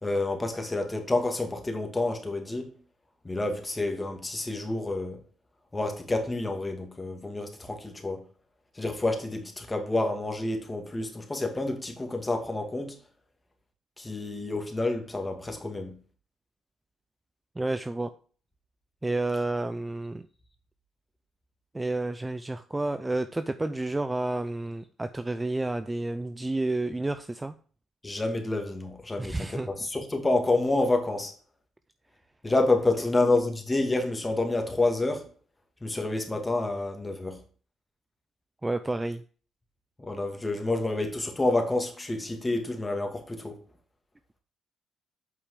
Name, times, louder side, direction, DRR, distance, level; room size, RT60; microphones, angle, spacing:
voice 1, 0.0-2.7 3.2-5.2 5.7-8.2 8.7-13.0 14.0-16.0 28.0-31.3 32.4-35.3 35.8-37.4 40.0-43.6, left 2 dB, 20° left, 2.4 m, -28 dB
voice 2, 17.6-18.1 19.0-20.3 21.7-27.5 29.2-29.7 38.6-39.2, right 2 dB, 15° right, 0.6 m, -30 dB
8.4 x 5.5 x 5.0 m
cardioid pair, 90°, 0 cm